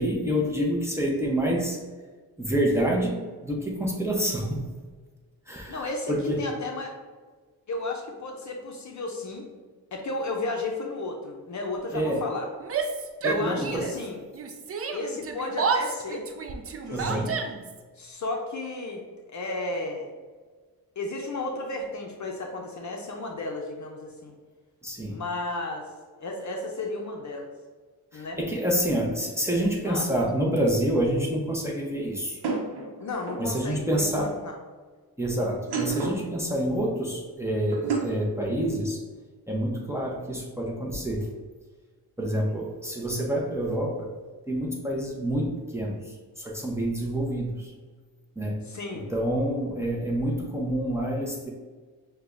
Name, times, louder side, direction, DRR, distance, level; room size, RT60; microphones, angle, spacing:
voice 1, 0.0-1.8 2.4-4.6 5.5-6.4 11.9-12.2 13.2-13.9 16.9-17.4 24.8-25.2 28.1-32.4 33.4-34.4 35.2-39.0 39.5-41.3 42.2-44.1 44.5-46.0 46.4-47.7 48.4-48.6 48.9-51.5, right 1 dB, 5° right, -3 dB, 0.7 m, -27 dB
voice 2, 5.7-6.9 7.7-9.4 9.9-12.5 13.2-14.2 14.9-16.2 16.9-17.3 18.0-19.0 19.3-20.1 21.0-24.3 25.1-25.9 26.2-27.5 28.1-28.4 29.9-30.1 33.0-34.5 48.7-49.1, left 2 dB, 45° left, 1 dB, 0.6 m, -33 dB
Yell, 12.6-14.1 14.3-17.8, right 5 dB, 40° right, 0.4 m, -30 dB
sound 1, 30.3-30.4 32.4-33.5 35.5-36.3 37.7-38.3, right 4 dB, 75° right, 0.8 m, -30 dB
6.5 x 2.3 x 2.5 m, 1.4 s
cardioid pair, 80°, 40 cm